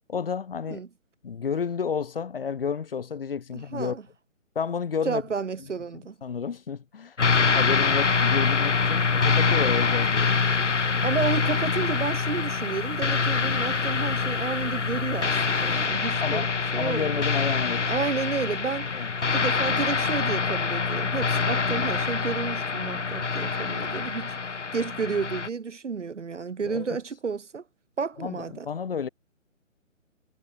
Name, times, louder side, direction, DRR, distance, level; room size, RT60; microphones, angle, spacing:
voice 1, 0.1-0.8 1.2-4.0 4.5-5.2 6.2-10.3 16.2-18.0 18.9-19.1 26.6-27.0 28.2-29.1, left 6 dB, 45° left, 4.5 m, -31 dB
voice 2, 3.5-4.0 5.0-6.1 11.0-16.5 16.7-17.2 17.9-18.9 19.3-24.3 24.7-27.6 28.0-28.7, right 5 dB, 65° right, 1.0 m, -31 dB
sound 1, 7.2-25.5, left 4 dB, 65° left, 1.8 m, -25 dB
figure-of-eight pair, 145°, 39 cm